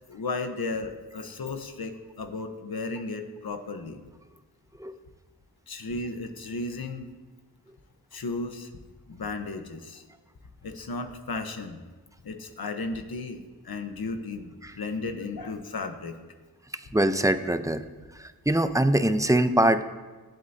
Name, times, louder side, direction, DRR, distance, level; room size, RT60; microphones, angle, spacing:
voice 1, 0.1-4.0 5.7-7.1 8.1-8.7 9.1-10.0 10.6-11.8 12.2-16.2, left 3 dB, 75° left, 6 dB, 1.2 m, -34 dB
voice 2, 16.9-17.8 18.2-19.8, right 1 dB, 10° right, 10 dB, 0.7 m, -23 dB
23.0 x 8.0 x 2.8 m, 1.3 s
cardioid pair, 50°, 37 cm